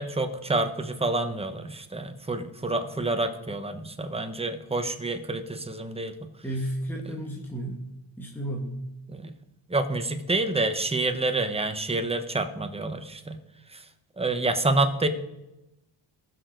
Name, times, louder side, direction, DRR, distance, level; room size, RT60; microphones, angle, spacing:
voice 1, 0.0-6.1 9.1-9.3 9.7-13.4 13.7-13.8 14.2-15.1, right 2 dB, 10° right, 7 dB, 1.2 m, -28 dB
voice 2, 6.4-7.8 8.2-8.8, right 1 dB, 5° left, -1 dB, 1.7 m, -32 dB
19.5 x 6.5 x 4.0 m, 0.92 s
cardioid pair, 85°, 49 cm